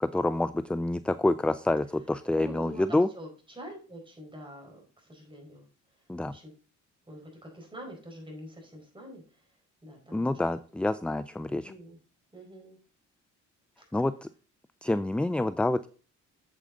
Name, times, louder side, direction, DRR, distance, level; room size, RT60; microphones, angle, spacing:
voice 1, 0.0-3.1 6.1-6.3 10.1-11.7 13.9-14.3 14.8-15.9, left 2 dB, 5° left, 14 dB, 0.3 m, -27 dB
voice 2, 2.3-5.7 6.3-6.5 7.1-9.2 9.8-10.4 11.6-12.0 12.3-12.8, equal, 15° right, 0 dB, 4.6 m, -45 dB
8.4 x 7.7 x 3.8 m, 0.38 s
cardioid pair, 90°, 30 cm